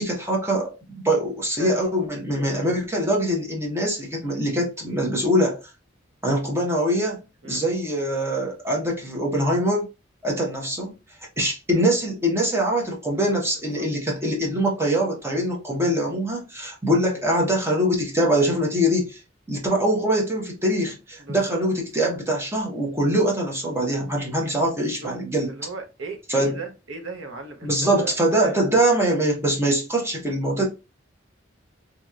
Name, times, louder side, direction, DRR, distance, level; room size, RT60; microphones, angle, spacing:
voice 1, 0.0-5.6 6.2-9.9 10.2-10.9 11.4-19.2 19.5-25.5 26.3-26.6 27.6-30.6, right 1 dB, 15° right, 0.9 m, -23 dB
voice 2, 21.2-21.6 24.8-25.1 25.5-28.6, right 4 dB, 85° right, 0.8 m, -36 dB
3.0 x 2.8 x 2.4 m
head